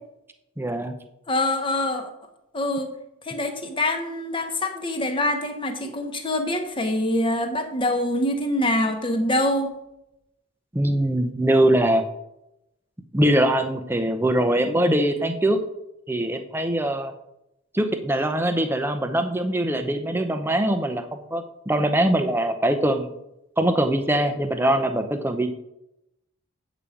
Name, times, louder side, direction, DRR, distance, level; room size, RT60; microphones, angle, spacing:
voice 1, 0.6-0.9 10.7-12.0 13.1-15.6 16.1-17.1 17.7-23.1 23.6-25.5, right 1 dB, 10° right, 7 dB, 0.7 m, -22 dB
voice 2, 1.3-2.1 2.5-2.9 3.3-9.7, left 1 dB, 25° left, 5 dB, 1.1 m, -25 dB
8.7 x 5.0 x 7.1 m, 0.85 s
head